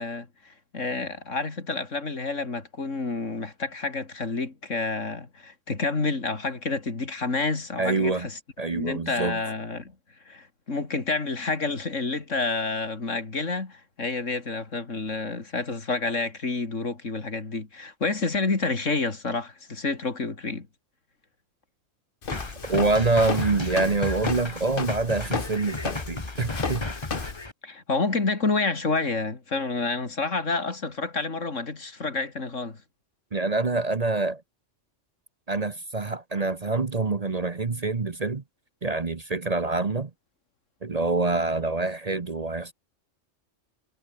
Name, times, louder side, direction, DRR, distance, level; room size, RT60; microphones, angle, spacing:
voice 1, 0.0-8.4 8.7-9.9 10.3-20.7 27.6-32.8, left 3 dB, 80° left, 3.3 m, -29 dB
voice 2, 7.8-8.3 8.6-9.4 22.7-26.8 33.3-34.4 35.5-38.4 38.8-40.1 40.8-42.7, right 3 dB, 35° right, 1.0 m, -26 dB
Walk footsteps, 22.2-27.4, left 5 dB, 45° left, 1.5 m, -34 dB
sound 1, 22.3-27.5, left 2 dB, 20° left, 1.7 m, -34 dB
omnidirectional pair, 1.3 m